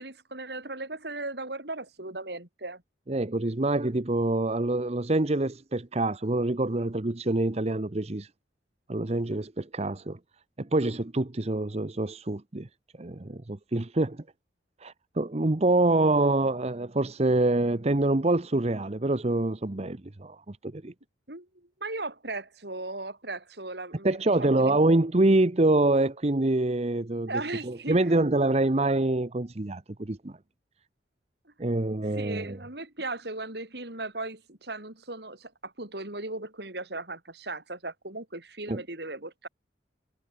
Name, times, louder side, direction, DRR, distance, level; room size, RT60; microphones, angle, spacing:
voice 1, 0.0-2.8 21.3-24.8 27.3-28.0 32.1-39.5, right 2 dB, 65° right, 4.7 m, -37 dB
voice 2, 3.1-8.3 8.9-10.2 10.6-12.7 13.0-14.2 14.8-20.9 24.0-30.3 31.6-32.6 38.7-38.8, right 2 dB, 35° right, 0.9 m, -26 dB
head